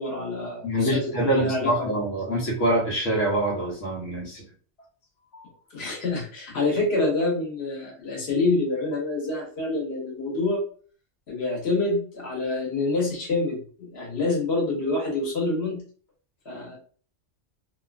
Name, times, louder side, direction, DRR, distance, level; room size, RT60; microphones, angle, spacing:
voice 1, 0.0-1.7 5.3-10.6 11.3-15.8 16.4-16.8, left 2 dB, 60° left, -3 dB, 1.3 m, -27 dB
voice 2, 0.6-4.4, right 1 dB, 85° left, -3 dB, 1.3 m, -25 dB
2.6 x 2.3 x 2.4 m, 0.43 s
omnidirectional pair, 1.2 m